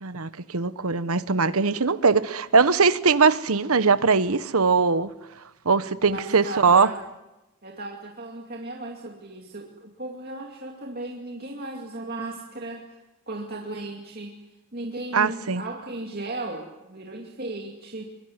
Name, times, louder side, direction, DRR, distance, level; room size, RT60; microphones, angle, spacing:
voice 1, 0.0-5.1 5.6-6.9 15.1-15.6, right 4 dB, 80° right, 14 dB, 1.1 m, -21 dB
voice 2, 6.1-7.0 7.6-13.0 13.3-14.4 14.7-18.0, right 2 dB, 45° right, 0 dB, 2.5 m, -36 dB
23.5 x 22.5 x 9.7 m, 1.0 s
head